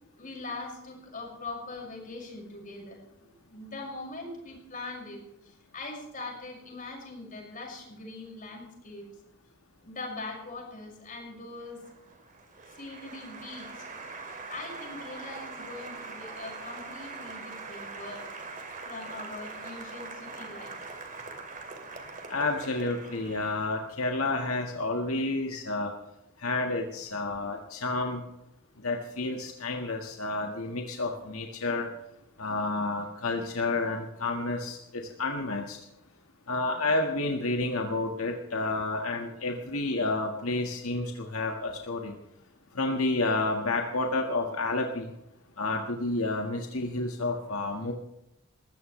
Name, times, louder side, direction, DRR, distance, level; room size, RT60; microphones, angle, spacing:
voice 1, 0.2-9.0 9.8-11.8 12.7-13.9 14.5-18.3 18.8-20.8, left 3 dB, 40° left, 0 dB, 6.0 m, -42 dB
Applause, 11.5-24.0, right 3 dB, 40° right, 2.5 m, -43 dB
voice 2, 22.3-25.9 26.4-28.2 28.8-31.9 32.4-35.8 36.5-42.1 42.7-45.1 45.6-47.9, left 2 dB, 90° left, 2 dB, 1.7 m, -30 dB
21.0 x 15.5 x 3.3 m, 0.86 s
head